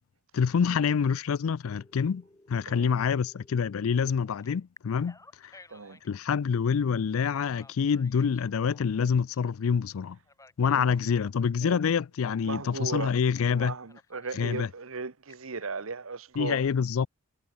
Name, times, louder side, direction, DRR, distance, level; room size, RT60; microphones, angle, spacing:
voice 1, 0.3-2.2 2.5-5.2 5.4-5.5 6.0-10.2 10.6-13.7 14.3-14.7 16.4-17.1, left 6 dB, 80° left, 0.4 m, -26 dB
Telephone, 1.6-3.9 4.4-6.2 7.2-9.4 10.2-11.6 13.3-13.6 13.9-14.7 15.1-15.7, left 2 dB, 15° left, 2.9 m, -56 dB
voice 2, 5.7-6.0 10.6-10.9 11.6-11.8 12.4-13.2 13.6-16.6, right 4 dB, 80° right, 1.2 m, -37 dB
head